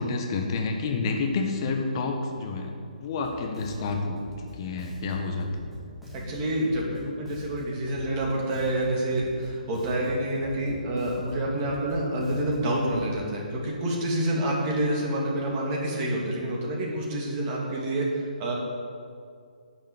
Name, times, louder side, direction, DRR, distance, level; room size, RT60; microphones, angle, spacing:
voice 1, 0.0-5.5, left 3 dB, 35° left, 2 dB, 1.4 m, -29 dB
Bass guitar, 3.2-13.1, equal, ahead, 2.3 m, -44 dB
voice 2, 6.1-18.5, right 1 dB, 25° right, -3 dB, 2.7 m, -28 dB
9.4 x 7.3 x 8.8 m, 2.3 s
figure-of-eight pair, 135°, 5 cm